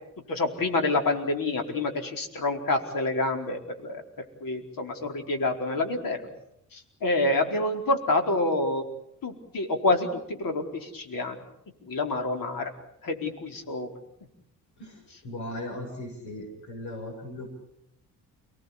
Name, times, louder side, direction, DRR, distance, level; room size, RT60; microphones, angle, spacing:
voice 1, 0.3-4.0 4.4-6.2 6.7-8.8 9.2-11.4 11.9-12.7 13.0-13.9, left 2 dB, 45° left, 4 dB, 4.7 m, -27 dB
voice 2, 15.2-17.5, left 1 dB, 60° left, -1 dB, 7.4 m, -37 dB
29.5 x 18.5 x 8.5 m, 0.80 s
figure-of-eight pair, 45°, 45 cm